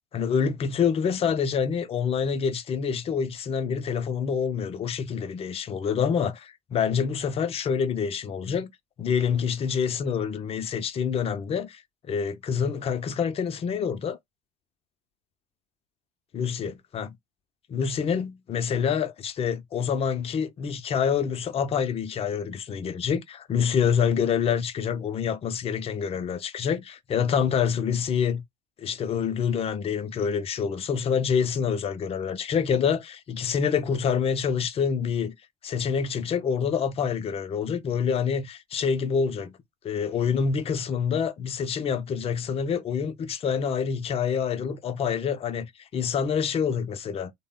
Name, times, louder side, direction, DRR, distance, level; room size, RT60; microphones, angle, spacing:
voice 1, 0.1-8.7 9.0-14.2 16.3-17.2 17.7-28.4 28.8-35.3 35.6-39.6 39.8-47.3, left 7 dB, 30° left, 0.6 m, -27 dB
3.4 x 2.1 x 3.7 m
figure-of-eight pair, 70°, 19 cm